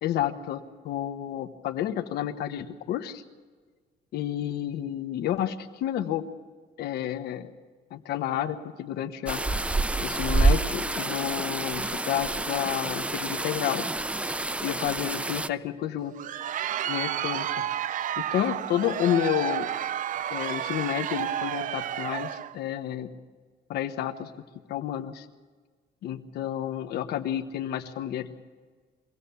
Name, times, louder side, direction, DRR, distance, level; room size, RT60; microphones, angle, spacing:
voice 1, 0.0-3.2 4.1-6.2 6.8-7.5 7.9-9.4 10.0-13.8 14.6-16.1 16.9-17.6 18.2-19.7 20.3-23.1 23.7-24.3 24.7-25.3 26.0-28.3, left 11 dB, 70° left, 7 dB, 1.3 m, -30 dB
sound 1, 9.3-15.5, right 2 dB, 5° right, 0.5 m, -28 dB
Crowd, 16.0-22.6, right 10 dB, 50° right, 0.6 m, -31 dB
23.5 x 17.0 x 7.0 m, 1.5 s
cardioid pair, 110°, 17 cm